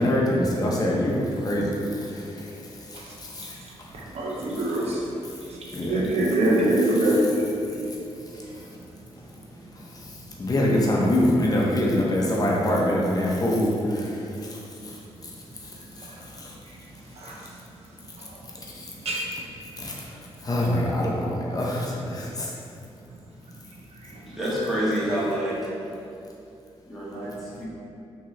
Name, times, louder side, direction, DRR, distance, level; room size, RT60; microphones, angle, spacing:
voice 1, 0.0-1.8 2.1-2.4 3.2-3.5 5.7-6.0 10.4-14.1 16.4-16.5 18.8-18.9 19.8-20.0 20.4-22.5, left 1 dB, 35° left, -4 dB, 0.6 m, -24 dB
voice 2, 3.9-5.1 5.5-7.7 16.0-16.2 16.7-16.8 17.2-17.4 18.2-18.4 19.0-19.3 24.0-24.2, right 1 dB, 75° right, -4 dB, 0.7 m, -25 dB
voice 3, 24.3-25.9 26.9-27.7, equal, ahead, -10 dB, 1.3 m, -28 dB
3.7 x 2.8 x 3.1 m, 2.7 s
cardioid pair, 85°, 11 cm